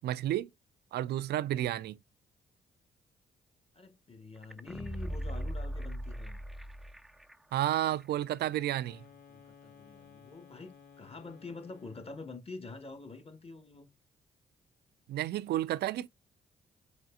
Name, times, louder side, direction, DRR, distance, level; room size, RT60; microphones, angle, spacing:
voice 1, 0.0-0.5 0.9-2.0 7.5-9.0 15.1-16.1, right 13 dB, 65° right, 0.4 m, -31 dB
voice 2, 3.7-6.4 9.3-13.9, left 3 dB, 35° left, 1.3 m, -46 dB
sound 1, 4.4-7.3 7.6-7.7, equal, ahead, 0.4 m, -38 dB
sound 2, 8.7-12.3, left 6 dB, 65° left, 2.0 m, -57 dB
5.0 x 4.0 x 2.4 m
hypercardioid pair, 45°, 18 cm